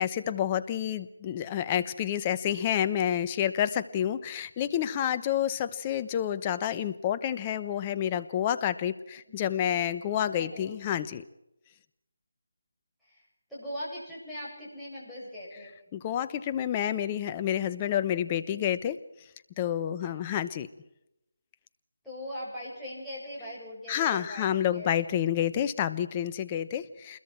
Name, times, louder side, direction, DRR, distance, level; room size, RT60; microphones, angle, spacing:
voice 1, 0.0-11.2 15.9-19.0 19.6-20.7 23.9-27.2, left 10 dB, 20° left, 12 dB, 0.9 m, -29 dB
voice 2, 10.4-10.7 13.0-13.2 13.5-15.7 20.0-20.4 22.0-24.9, equal, 5° left, -10 dB, 7.6 m, -40 dB
28.0 x 21.5 x 4.5 m, 0.86 s
figure-of-eight pair, 160°, 0 cm